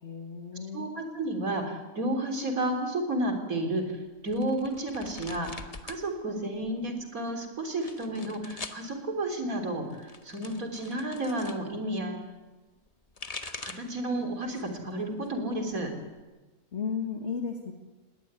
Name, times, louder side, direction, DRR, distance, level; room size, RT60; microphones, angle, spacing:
voice 1, 0.0-0.9 16.7-17.7, left 6 dB, 50° left, 3 dB, 2.0 m, -34 dB
voice 2, 0.7-12.2 13.4-15.9, right 1 dB, 75° right, 4 dB, 4.0 m, -32 dB
sound 1, 4.3-6.0 6.3-7.0 7.7-8.8 9.8-11.6 12.9-14.0 14.4-14.9 15.2-16.2, left 3 dB, 30° left, 1.2 m, -43 dB
20.5 x 17.5 x 9.7 m, 1.2 s
omnidirectional pair, 1.5 m